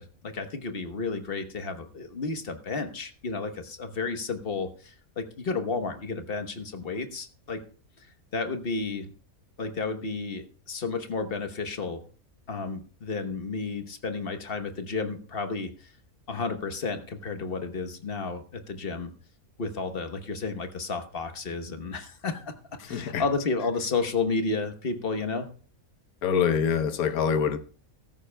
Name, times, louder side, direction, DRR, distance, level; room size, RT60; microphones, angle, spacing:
voice 1, 0.0-7.7 8.0-9.1 9.6-12.0 12.5-15.9 16.3-19.1 19.6-25.5, left 4 dB, 45° left, 1.2 m, -32 dB
voice 2, 22.9-23.3 26.2-27.6, left 7 dB, 85° left, 1.3 m, -25 dB
15.0 x 13.5 x 2.2 m
omnidirectional pair, 1.5 m